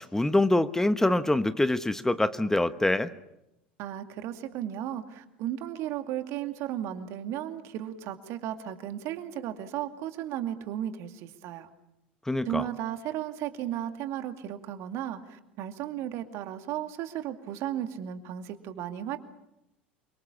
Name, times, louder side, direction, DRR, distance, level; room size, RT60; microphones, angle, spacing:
voice 1, 0.0-3.1 12.3-12.6, left 1 dB, 10° left, 12 dB, 1.1 m, -25 dB
voice 2, 3.8-11.7 12.4-19.2, right 11 dB, 55° right, 8 dB, 2.4 m, -35 dB
28.0 x 24.5 x 7.2 m, 0.85 s
figure-of-eight pair, 70°, 6 cm